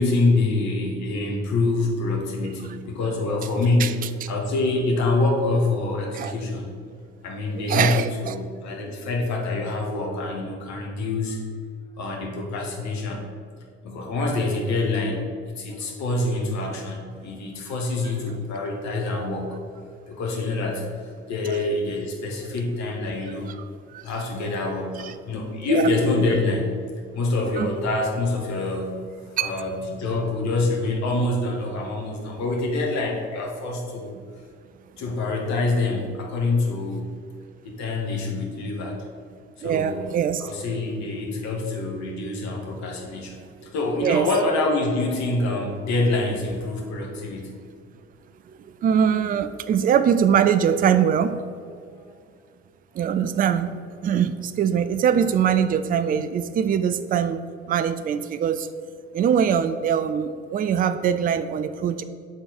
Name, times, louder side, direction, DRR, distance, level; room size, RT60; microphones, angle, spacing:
voice 1, 0.0-6.8 7.2-11.4 12.0-13.3 13.8-15.2 15.5-19.6 20.1-23.5 24.0-26.8 27.1-29.0 29.4-34.1 35.0-37.1 37.6-39.0 39.6-40.1 40.4-43.4 43.7-47.5 51.9-52.1, left 2 dB, 55° left, 1 dB, 1.2 m, -26 dB
voice 2, 7.7-8.4 21.5-21.7 23.9-24.0 25.0-25.1 25.7-25.9 27.6-27.7 29.4-29.5 39.6-40.4 44.0-44.3 48.5-51.4 52.9-57.4 57.7-58.7 59.1-62.0, right 8 dB, 25° right, 11 dB, 0.4 m, -22 dB
7.6 x 4.0 x 4.2 m, 2.2 s
figure-of-eight pair, 40°, 33 cm